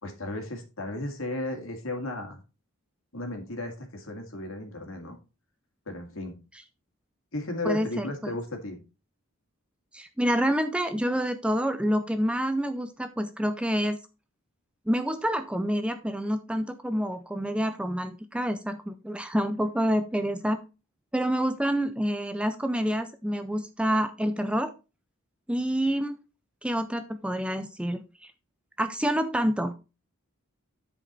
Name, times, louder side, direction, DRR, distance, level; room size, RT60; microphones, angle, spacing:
voice 1, 0.0-2.4 3.1-5.2 5.9-6.4 7.3-8.8, left 2 dB, 70° left, 4 dB, 2.2 m, -34 dB
voice 2, 7.6-8.3 9.9-14.0 14.9-20.6 21.1-24.7 25.5-26.2 26.6-28.3 28.8-29.7, equal, 5° right, 9 dB, 0.5 m, -27 dB
9.9 x 5.1 x 4.2 m, 0.30 s
head